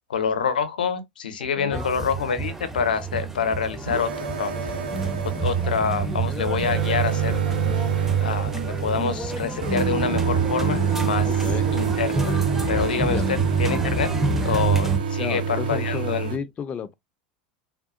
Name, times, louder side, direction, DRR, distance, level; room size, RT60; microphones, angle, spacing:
voice 1, 0.1-4.7 5.4-7.4 8.2-8.5 8.8-11.3 11.7-12.4 12.7-14.1 14.4-16.3, left 6 dB, 85° left, 0.6 m, -26 dB
voice 2, 1.4-1.9 11.2-11.7 12.9-13.3 15.2-16.9, left 7 dB, 30° left, 0.4 m, -32 dB
sound 1, 1.7-15.0, right 5 dB, 10° right, 0.6 m, -26 dB
sound 2, 3.9-16.4, right 6 dB, 80° right, 0.7 m, -29 dB
3.5 x 2.2 x 2.4 m
hypercardioid pair, 85°, 5 cm